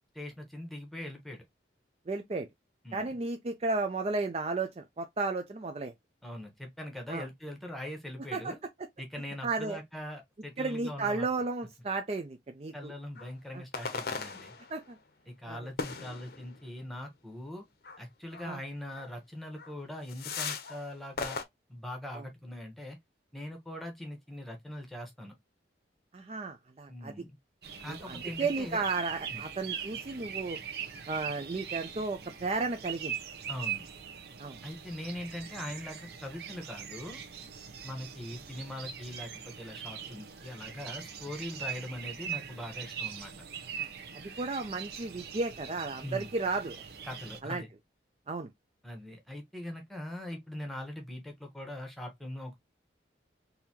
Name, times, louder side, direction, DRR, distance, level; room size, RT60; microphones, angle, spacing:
voice 1, 0.1-1.4 2.8-3.1 6.2-8.6 9.0-11.3 12.7-14.5 15.3-17.6 18.0-21.4 21.7-23.0 23.3-25.3 26.9-27.4 27.8-28.8 29.3-29.4 33.5-33.9 34.6-37.2 37.8-43.3 46.0-46.3 47.0-47.7 48.8-52.6, left 1 dB, ahead, 1.0 m, -41 dB
voice 2, 2.1-2.5 2.9-5.9 7.1-7.3 8.3-8.5 9.4-9.8 10.6-12.9 13.5-13.6 14.7-15.0 15.5-15.6 18.4-18.6 22.1-22.2 26.1-27.1 27.9-30.6 31.1-33.2 34.4-34.6 43.8-43.9 44.1-46.8 47.4-47.6 48.3-48.5, right 3 dB, 35° right, 0.4 m, -33 dB
sound 1, 13.2-13.3 13.7-14.9 15.8-16.6 17.8-18.0 18.3-18.5 18.9-19.1 19.6-19.7 20.1-20.8 21.2-21.4, left 5 dB, 55° left, 0.7 m, -38 dB
sound 2, 27.6-47.4, right 8 dB, 60° right, 0.8 m, -42 dB
3.9 x 2.7 x 2.8 m
head